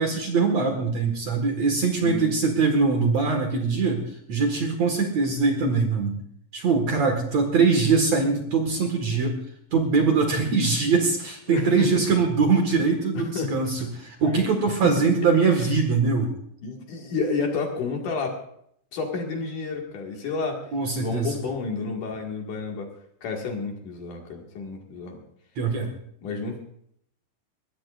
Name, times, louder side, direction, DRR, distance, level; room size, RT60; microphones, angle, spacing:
voice 1, 0.0-4.0 4.3-6.2 6.5-9.4 9.7-16.3 20.7-21.4 25.6-25.9, right 4 dB, 50° right, 3 dB, 2.5 m, -22 dB
voice 2, 2.0-2.3 11.5-11.9 13.1-13.9 14.2-14.4 14.8-14.9 16.6-18.4 18.9-20.6 21.0-22.9 23.2-25.2 26.2-26.6, left 4 dB, 55° left, 1 dB, 3.3 m, -30 dB
22.0 x 18.0 x 2.5 m, 0.70 s
omnidirectional pair, 4.7 m